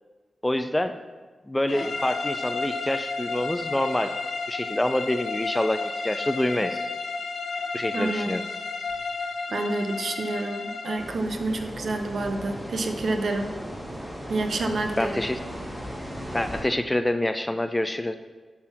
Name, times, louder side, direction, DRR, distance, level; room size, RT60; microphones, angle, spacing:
voice 1, 0.4-1.0 1.5-4.2 4.5-6.8 7.7-8.4 15.0-15.4 16.3-18.1, left 1 dB, 10° left, 9 dB, 0.4 m, -26 dB
sound 1, 1.7-11.1, left 4 dB, 65° left, 1.1 m, -32 dB
voice 2, 7.9-8.4 9.5-13.5 14.3-15.2, right 2 dB, 65° right, 5 dB, 0.9 m, -28 dB
sound 2, 11.0-16.6, equal, 10° right, 1.9 m, -37 dB
8.6 x 5.9 x 5.8 m, 1.4 s
wide cardioid pair, 115°, 0 cm